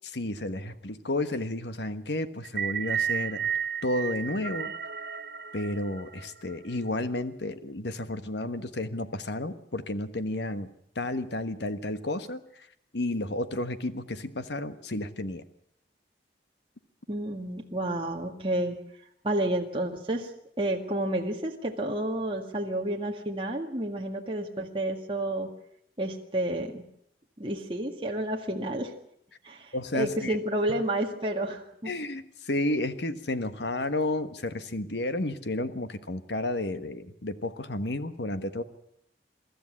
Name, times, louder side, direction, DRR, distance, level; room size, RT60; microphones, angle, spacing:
voice 1, 0.1-3.4 3.8-4.7 5.5-10.7 10.9-12.4 12.9-15.4 29.7-30.4 31.9-38.6, left 1 dB, 80° left, 11 dB, 1.4 m, -31 dB
sound 1, 2.4-6.8, right 8 dB, 60° right, 0.9 m, -33 dB
voice 2, 17.1-18.8 19.2-20.3 20.6-25.5 26.0-26.8 27.4-28.9 29.4-31.9, right 1 dB, 30° right, 1 dB, 1.8 m, -30 dB
23.5 x 13.5 x 9.8 m, 0.72 s
head